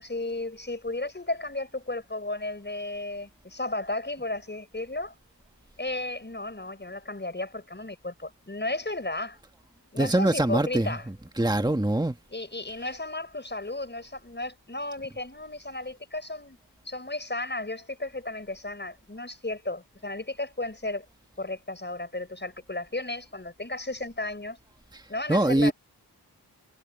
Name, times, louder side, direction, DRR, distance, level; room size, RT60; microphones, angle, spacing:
voice 1, 0.0-5.1 5.8-9.4 9.9-11.1 12.3-16.6 16.8-21.0 21.4-24.6 25.1-25.7, left 2 dB, 25° left, 6.3 m, -34 dB
voice 2, 10.0-11.0 11.4-12.2 25.3-25.7, right 1 dB, 10° right, 1.9 m, -23 dB
wide cardioid pair, 85°, 40 cm